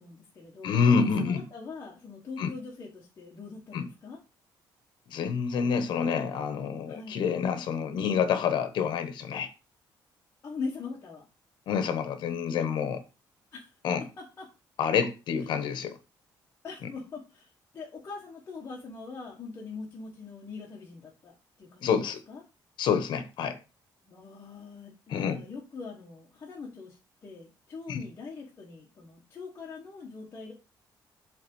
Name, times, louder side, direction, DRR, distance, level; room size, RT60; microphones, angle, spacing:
voice 1, 0.0-4.2 6.9-7.2 10.4-11.3 13.5-13.7 14.2-14.5 16.6-22.0 22.3-22.4 24.0-30.5, left 4 dB, 30° left, 1.4 m, -42 dB
voice 2, 0.6-1.4 2.4-2.5 3.7-3.9 5.1-9.5 11.7-13.0 13.8-14.0 14.8-16.0 21.8-22.2 22.8-23.6 25.1-25.4 27.9-28.0, left 6 dB, 70° left, 1.1 m, -27 dB
7.7 x 3.5 x 5.4 m
cardioid pair, 175°, 8 cm